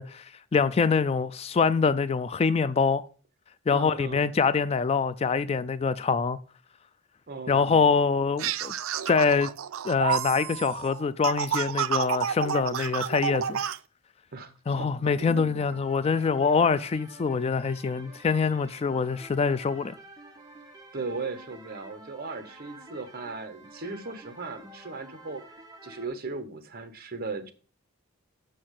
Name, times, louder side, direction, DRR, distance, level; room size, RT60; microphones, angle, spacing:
voice 1, 0.0-3.1 3.7-6.4 7.5-8.7 9.1-9.5 9.8-13.6 14.7-20.0, left 5 dB, 30° left, 0.3 m, -25 dB
voice 2, 3.7-4.3 7.3-7.9 14.3-15.6 20.9-25.4 25.8-27.5, right 3 dB, 45° right, 1.0 m, -37 dB
sound 1, 8.4-13.8, right 8 dB, 70° right, 0.4 m, -30 dB
sound 2, 15.6-26.1, right 1 dB, 20° right, 1.0 m, -49 dB
6.4 x 5.9 x 6.5 m
head